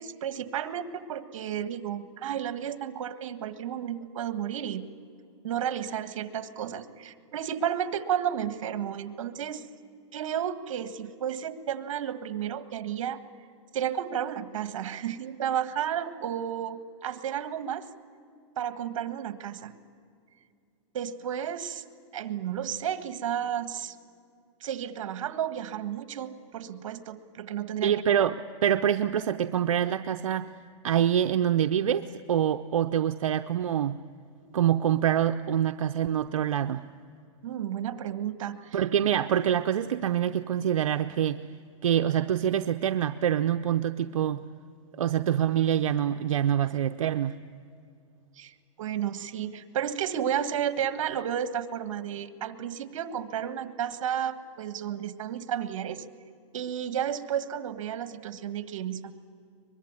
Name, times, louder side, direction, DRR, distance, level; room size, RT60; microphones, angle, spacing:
voice 1, 0.0-4.9 5.4-9.6 10.1-13.2 13.7-17.9 18.6-19.7 20.9-21.9 22.1-23.9 24.6-28.0 37.4-38.8 48.3-56.0 56.5-59.1, right 9 dB, 70° right, 10 dB, 1.6 m, -32 dB
voice 2, 27.8-28.3 28.6-30.5 30.8-34.0 34.5-36.8 38.7-41.4 41.8-44.4 45.0-47.4, right 10 dB, 90° right, 8 dB, 0.7 m, -25 dB
23.0 x 22.0 x 9.6 m, 2.3 s
hypercardioid pair, 140°, 17 cm